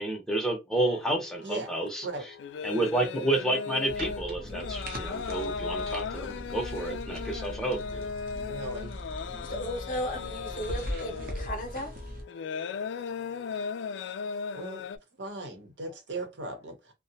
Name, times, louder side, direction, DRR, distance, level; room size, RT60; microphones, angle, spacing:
voice 1, 0.0-2.0 2.6-8.1, right 1 dB, 5° left, 0.7 m, -30 dB
sound 1, 0.7-15.0, left 6 dB, 80° left, 0.3 m, -37 dB
sound 2, 3.9-12.2, equal, 55° right, 0.7 m, -39 dB
voice 2, 8.5-9.0 14.5-14.8 15.2-16.9, right 2 dB, 75° right, 0.8 m, -38 dB
voice 3, 9.4-11.9, left 1 dB, 50° left, 0.7 m, -35 dB
2.7 x 2.1 x 2.7 m
head